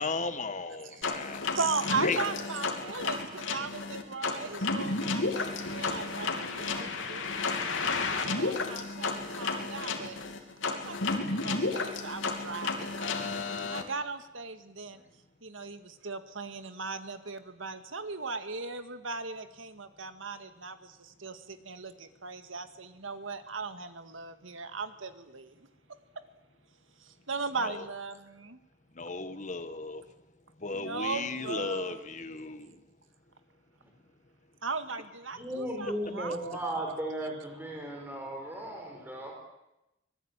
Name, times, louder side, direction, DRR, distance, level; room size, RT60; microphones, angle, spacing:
voice 1, 0.0-1.4 2.0-2.2 27.6-27.8 29.0-30.0 30.6-32.7, left 3 dB, 40° left, 10 dB, 1.6 m, -35 dB
sound 1, 1.0-13.8, left 3 dB, 85° left, 3.3 m, -32 dB
voice 2, 1.5-7.3 8.4-10.2 10.7-13.4 13.7-15.0 15.4-25.7 26.2-26.3 27.0-28.6 30.7-32.0 34.6-36.6, right 4 dB, 90° right, 9 dB, 2.0 m, -38 dB
voice 3, 35.3-39.3, right 1 dB, 10° right, 1 dB, 5.2 m, -36 dB
24.5 x 20.5 x 9.1 m, 0.92 s
head